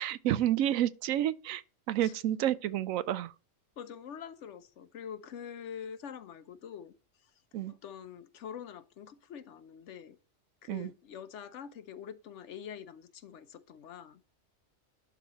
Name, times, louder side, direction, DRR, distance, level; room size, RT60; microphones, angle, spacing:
voice 1, 0.0-1.6 1.9-3.3 7.5-7.7 10.7-10.9, right 12 dB, 85° right, 1.0 m, -30 dB
voice 2, 3.8-6.9 7.2-7.3 7.7-10.2 10.6-14.4, left 8 dB, 65° left, 1.0 m, -45 dB
11.5 x 4.1 x 2.9 m
omnidirectional pair, 1.4 m